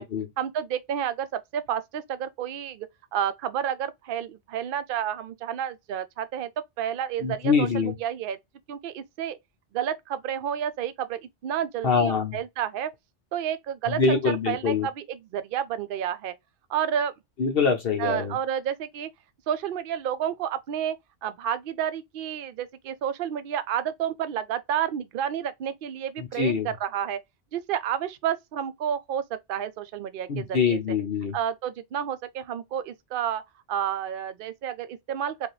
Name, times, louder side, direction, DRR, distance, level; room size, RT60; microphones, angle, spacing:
voice 1, 0.4-2.9 3.1-6.5 6.8-8.4 8.7-9.4 9.7-12.9 13.3-14.2 14.5-14.7 15.3-16.3 16.7-17.1 18.0-19.1 19.5-21.0 21.2-27.2 27.5-30.8 31.3-33.4 33.7-35.5, right 9 dB, 60° right, 0.6 m, -30 dB
voice 2, 7.2-7.9 11.8-12.4 13.9-14.9 17.4-18.4 26.2-26.7 30.3-31.4, left 5 dB, 60° left, 0.9 m, -24 dB
5.0 x 2.3 x 3.1 m
omnidirectional pair, 1.2 m